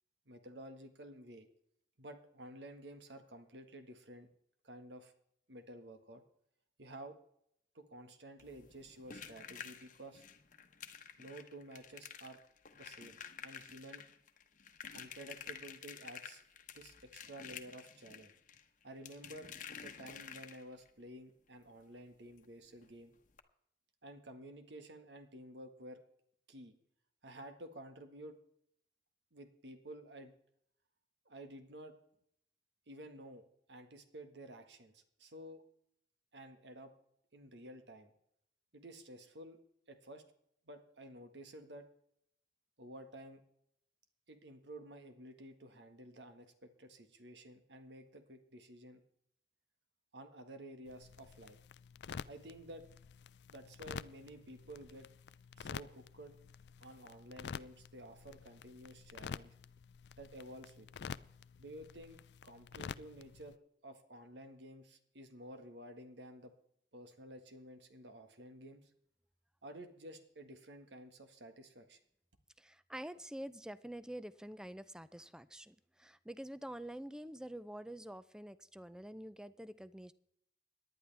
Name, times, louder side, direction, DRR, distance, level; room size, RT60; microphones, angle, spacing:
voice 1, 0.3-1.5 2.0-4.3 4.6-5.1 5.5-6.2 6.8-7.2 7.8-10.2 11.2-12.4 12.7-14.0 14.9-16.4 16.7-18.3 18.8-19.5 19.8-23.1 24.0-26.0 26.5-26.7 27.2-28.4 29.3-30.3 31.3-32.0 32.9-35.6 36.3-36.9 37.3-38.1 38.7-39.6 39.9-40.2 40.7-41.9 42.8-43.4 44.3-49.0 50.1-51.6 52.3-52.9 53.5-55.1 55.6-56.4 56.8-59.5 60.2-61.1 61.6-63.6 63.8-66.5 66.9-68.9 69.6-72.0, right 1 dB, 80° right, 7 dB, 1.6 m, -52 dB
sound 1, 8.4-20.9 22.4-22.5 22.7-22.9 23.3-23.4, left 7 dB, 50° left, 1.0 m, -51 dB
sound 2, 50.9-63.6, left 6 dB, 70° left, 0.4 m, -49 dB
voice 2, 72.6-80.1, right 1 dB, 5° right, 15 dB, 0.5 m, -47 dB
18.0 x 11.0 x 3.4 m, 0.71 s
head